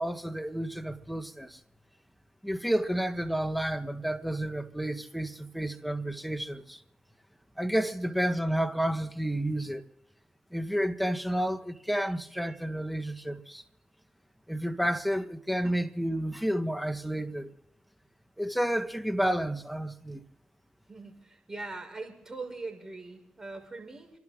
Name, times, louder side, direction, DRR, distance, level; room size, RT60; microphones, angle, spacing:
voice 1, 0.0-1.6 2.4-6.8 7.6-9.8 10.5-13.6 14.5-17.5 18.4-20.2, right 1 dB, ahead, 1.6 m, -30 dB
voice 2, 20.9-24.1, right 3 dB, 20° right, 6.4 m, -41 dB
29.0 x 12.0 x 3.9 m
supercardioid pair, 45°, 3 cm